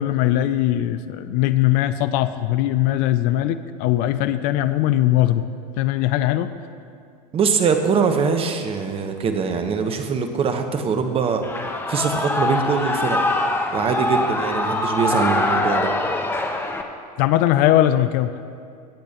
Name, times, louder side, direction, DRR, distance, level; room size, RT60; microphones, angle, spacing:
voice 1, 0.0-5.4 5.8-6.5 17.2-18.3, left 13 dB, 45° left, 12 dB, 0.5 m, -20 dB
voice 2, 7.3-11.4 11.9-13.2 13.7-15.9, right 5 dB, 25° right, 6 dB, 1.0 m, -22 dB
Shout / Cheering, 11.4-16.8, left 2 dB, 10° left, 1.0 m, -23 dB
22.5 x 8.4 x 2.9 m, 2.3 s
figure-of-eight pair, 85°, 21 cm